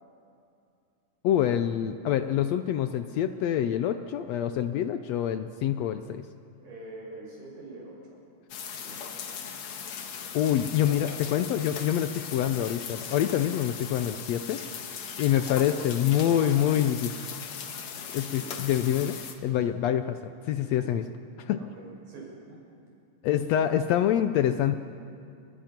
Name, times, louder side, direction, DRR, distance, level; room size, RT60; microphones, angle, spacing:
voice 1, 1.2-6.2 10.3-14.6 15.2-17.1 18.1-20.2 20.5-21.0 21.5-21.6 23.2-24.8, left 10 dB, 75° left, 9 dB, 1.6 m, -26 dB
voice 2, 6.6-8.2 8.7-9.5 10.9-11.2 15.3-16.7 18.2-18.5 20.7-21.0 21.5-22.6 22.9-23.0, right 2 dB, 75° right, -3 dB, 7.9 m, -45 dB
sound 1, 8.5-19.3, left 7 dB, 60° left, 2.5 m, -39 dB
30.0 x 21.5 x 5.9 m, 2.5 s
omnidirectional pair, 3.7 m